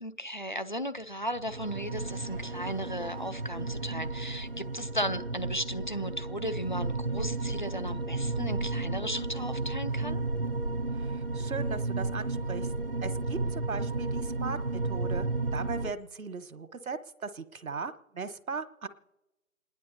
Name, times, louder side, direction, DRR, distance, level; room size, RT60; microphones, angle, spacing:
voice 1, 0.0-10.2, equal, 35° left, 12 dB, 0.5 m, -36 dB
sound 1, 1.3-15.9, right 2 dB, 45° right, 0.4 m, -33 dB
voice 2, 11.0-12.7 13.0-18.9, right 5 dB, 80° right, 12 dB, 1.3 m, -38 dB
28.0 x 10.5 x 4.1 m, 0.98 s
hypercardioid pair, 175°, 41 cm